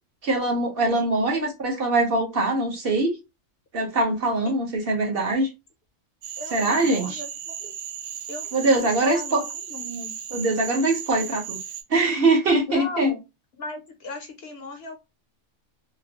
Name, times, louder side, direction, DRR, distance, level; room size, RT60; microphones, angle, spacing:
voice 1, 0.2-3.1 3.7-5.5 6.5-7.2 8.5-9.4 10.3-11.6 11.9-13.1, right 2 dB, 50° right, 1.1 m, -22 dB
voice 2, 0.9-1.5 4.5-4.6 6.4-7.7 8.3-10.2 12.7-13.2 13.6-15.0, left 2 dB, 60° left, 0.8 m, -37 dB
Cricket / Frog, 6.2-11.8, right 8 dB, 75° right, 0.9 m, -36 dB
3.0 x 2.6 x 2.7 m
omnidirectional pair, 1.3 m